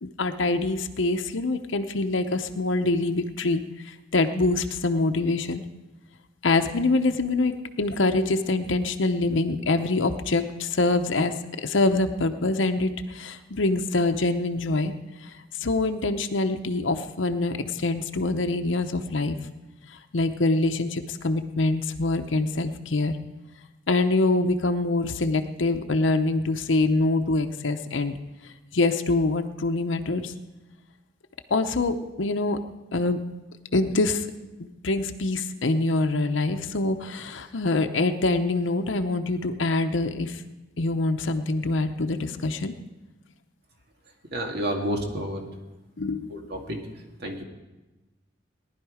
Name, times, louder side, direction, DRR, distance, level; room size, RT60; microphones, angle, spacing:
voice 1, 0.0-5.6 6.4-14.9 15.2-15.3 15.6-19.4 20.1-23.2 23.9-28.2 28.7-30.3 31.5-32.6 32.9-33.2 33.7-34.3 34.6-40.4 40.8-42.7 46.0-46.5, left 2 dB, 90° left, 6 dB, 0.8 m, -25 dB
voice 2, 44.3-45.5 46.3-46.8 47.2-47.4, equal, 60° right, 2 dB, 2.1 m, -30 dB
18.5 x 11.0 x 4.9 m, 1.1 s
head